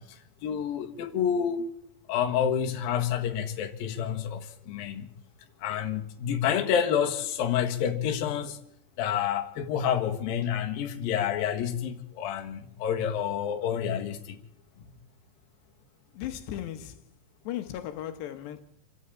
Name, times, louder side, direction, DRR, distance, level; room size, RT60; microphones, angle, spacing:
voice 1, 0.0-1.7 2.1-5.1 5.6-8.6 9.0-14.4, left 8 dB, 65° left, 3.1 m, -29 dB
voice 2, 16.1-17.0 17.4-18.6, left 11 dB, 80° left, 3.4 m, -36 dB
27.5 x 12.5 x 8.8 m
omnidirectional pair, 4.9 m